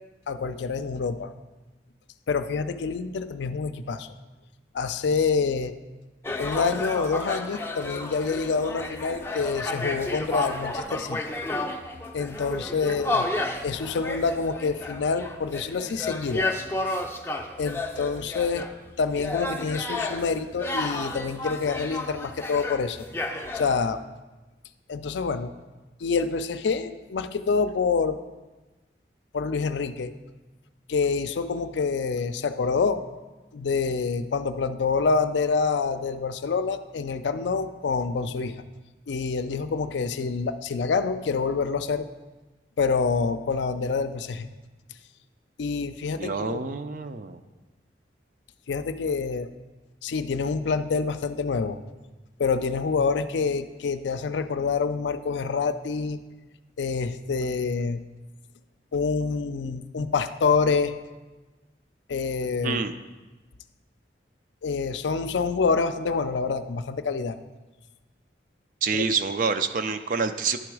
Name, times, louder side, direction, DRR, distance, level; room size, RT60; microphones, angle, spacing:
voice 1, 0.3-1.3 2.3-4.1 4.7-5.7 6.4-11.2 12.1-13.3 13.6-16.5 17.6-18.6 19.0-23.0 23.5-24.0 24.9-25.5 26.0-28.2 29.3-30.1 30.9-33.0 33.5-38.6 39.1-42.1 42.8-44.5 45.6-46.6 48.7-49.5 50.0-51.8 52.4-56.2 56.8-58.0 58.9-60.9 62.1-62.8 64.6-67.4 68.9-69.0, left 5 dB, 80° left, 10 dB, 0.4 m, -27 dB
sound 1, 6.2-23.8, left 2 dB, 15° left, 0.4 m, -32 dB
voice 2, 46.2-47.4 62.6-62.9 68.8-70.6, right 5 dB, 50° right, 9 dB, 0.4 m, -27 dB
11.0 x 3.9 x 4.7 m, 1.2 s
head